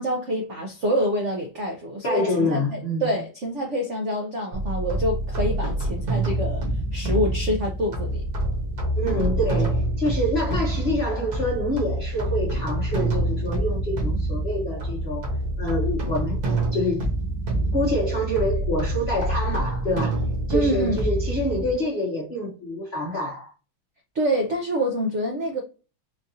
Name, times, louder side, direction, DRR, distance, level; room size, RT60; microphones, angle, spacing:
voice 1, 0.0-8.3 20.5-21.0 24.1-25.6, equal, 75° right, 0.6 m, -26 dB
voice 2, 2.0-3.1 8.9-15.3 15.6-16.4 16.7-17.1 17.7-20.2 20.5-23.5, left 1 dB, 65° left, 0.6 m, -26 dB
sound 1, 4.5-21.7, right 1 dB, 55° right, 1.5 m, -26 dB
4.4 x 2.5 x 2.6 m
omnidirectional pair, 2.2 m